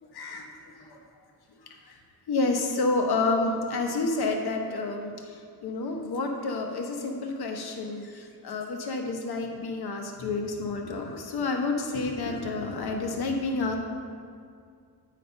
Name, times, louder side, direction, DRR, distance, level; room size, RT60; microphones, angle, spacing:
voice 1, 0.1-1.0 1.5-2.0 2.3-13.8, left 3 dB, 75° left, 3 dB, 1.0 m, -30 dB
9.1 x 4.2 x 5.5 m, 2.2 s
wide cardioid pair, 180°, 39 cm